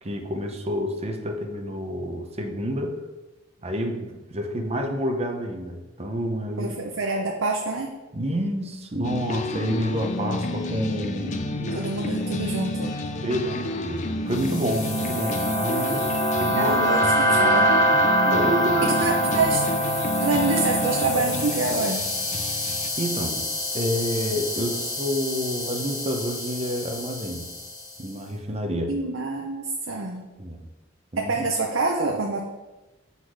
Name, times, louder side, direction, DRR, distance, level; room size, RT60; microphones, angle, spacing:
voice 1, 0.0-3.0 3.6-6.7 8.1-11.8 13.2-16.1 16.4-17.6 18.3-18.9 23.0-23.4 23.7-27.5 28.0-29.0 30.4-30.6 31.1-31.4, equal, 30° right, 4 dB, 0.9 m, -29 dB
voice 2, 6.6-8.0 11.7-13.0 16.5-17.8 18.8-19.7 20.2-22.1 28.9-30.2 31.2-32.4, right 3 dB, 75° right, 0 dB, 0.8 m, -26 dB
sound 1, 9.0-22.9, left 2 dB, 35° left, 0.5 m, -30 dB
sound 2, 14.4-27.8, equal, 20° left, 1.1 m, -25 dB
8.2 x 4.1 x 4.8 m, 1.1 s
head